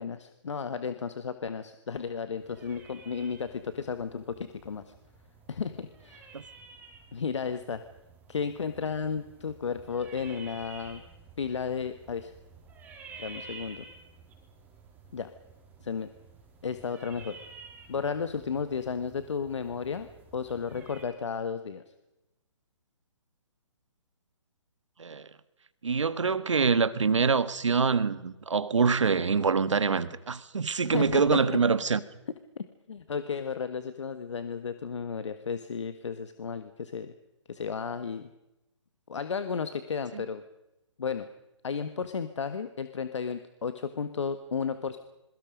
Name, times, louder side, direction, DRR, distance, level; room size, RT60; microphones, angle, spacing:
voice 1, 0.0-4.9 5.5-6.3 7.1-7.8 8.3-11.0 11.4-12.3 13.2-13.9 15.1-15.3 15.8-16.1 16.6-17.4 17.9-20.1 20.3-21.8 30.9-31.6 32.9-37.1 37.5-38.3 39.1-40.4 41.0-41.3 41.6-45.0, left 6 dB, 70° left, 1.7 m, -33 dB
sound 1, 2.4-21.0, right 4 dB, 10° right, 4.6 m, -51 dB
voice 2, 25.8-32.0 40.1-40.2, right 5 dB, 85° right, 1.6 m, -25 dB
27.5 x 23.0 x 5.3 m
hypercardioid pair, 150°, 15 cm